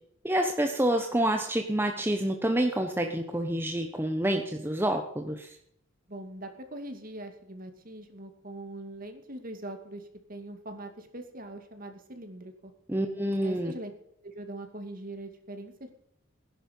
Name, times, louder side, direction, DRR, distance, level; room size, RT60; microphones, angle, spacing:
voice 1, 0.2-5.6 12.9-13.7, right 1 dB, 10° right, 4 dB, 1.0 m, -28 dB
voice 2, 6.1-12.7 13.4-13.9 14.2-15.9, right 1 dB, 40° right, 6 dB, 2.4 m, -42 dB
17.5 x 10.5 x 5.5 m, 0.73 s
head